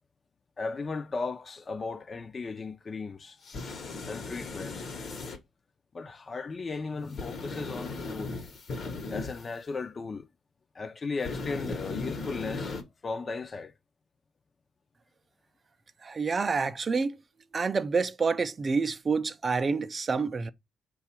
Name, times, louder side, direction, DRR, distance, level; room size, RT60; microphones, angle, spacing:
voice 1, 0.6-3.4 4.1-4.9 5.9-8.4 9.1-10.3 10.8-12.8 13.0-13.7, left 4 dB, 35° left, 0.5 m, -36 dB
sound 1, 3.4-5.4 7.1-9.5 11.2-12.8, left 3 dB, 55° left, 0.9 m, -37 dB
voice 2, 16.0-17.2 17.5-20.5, right 4 dB, 35° right, 0.4 m, -28 dB
4.8 x 2.3 x 4.2 m
cardioid pair, 95°, 0 cm